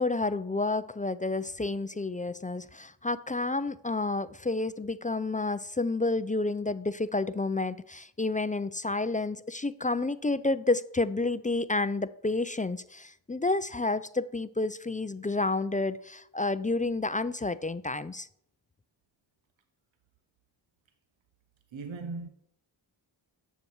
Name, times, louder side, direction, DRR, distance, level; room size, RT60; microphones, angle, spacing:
voice 1, 0.0-18.3, left 3 dB, 20° left, 0.4 m, -30 dB
voice 2, 21.7-22.3, right 3 dB, 85° right, 0.7 m, -37 dB
9.8 x 6.9 x 4.6 m
cardioid pair, 40°, 45 cm